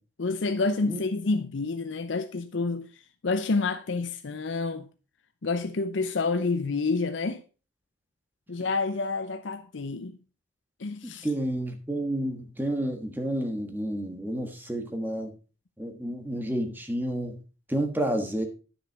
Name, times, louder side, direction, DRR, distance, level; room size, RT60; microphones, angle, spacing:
voice 1, 0.2-2.9 3.2-4.9 5.4-7.4 8.5-10.2 10.8-11.3, left 3 dB, 85° left, 0.6 m, -28 dB
voice 2, 11.0-15.3 15.8-17.4 17.7-18.5, right 1 dB, 10° right, 1.4 m, -30 dB
10.0 x 6.4 x 4.5 m
head